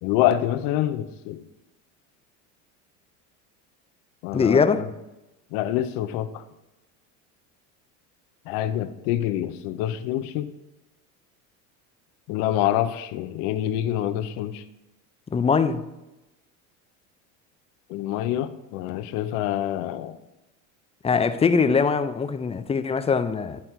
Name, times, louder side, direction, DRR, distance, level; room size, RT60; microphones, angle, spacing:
voice 1, 0.0-1.4 4.2-4.9 5.5-6.4 8.5-10.5 12.3-14.6 17.9-20.2, left 12 dB, 70° left, 0.8 m, -26 dB
voice 2, 4.3-4.8 15.3-15.8 21.0-23.6, left 5 dB, 15° left, 0.5 m, -22 dB
11.0 x 4.3 x 4.5 m
supercardioid pair, 100°, 38 cm